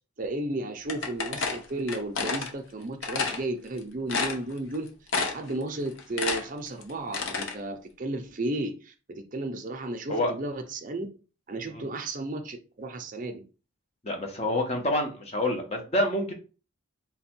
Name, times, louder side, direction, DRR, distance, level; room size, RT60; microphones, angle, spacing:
voice 1, 0.2-4.9 5.2-11.1 11.5-13.4, right 2 dB, 40° right, 5 dB, 0.5 m, -34 dB
sound 1, 0.9-2.5 3.0-3.4 3.8-3.9 4.1-4.8 5.1-5.5 5.9-7.5, left 4 dB, 65° left, 0.7 m, -29 dB
voice 2, 14.0-16.3, left 1 dB, 30° left, 2 dB, 0.7 m, -27 dB
3.4 x 2.2 x 4.3 m, 0.34 s
head